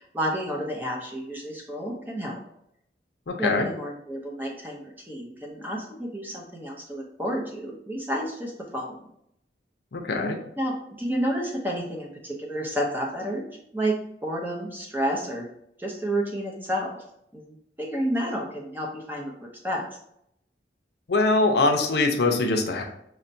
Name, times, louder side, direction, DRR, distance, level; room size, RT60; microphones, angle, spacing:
voice 1, 0.0-2.4 3.4-9.0 10.6-13.4 13.7-13.9 14.2-15.5 15.8-17.0 17.3-19.9, right 1 dB, 10° right, -1 dB, 0.6 m, -30 dB
voice 2, 3.3-3.7 9.9-10.4 21.1-22.8, left 3 dB, 70° left, 3 dB, 0.5 m, -22 dB
5.5 x 2.1 x 2.6 m, 0.76 s
head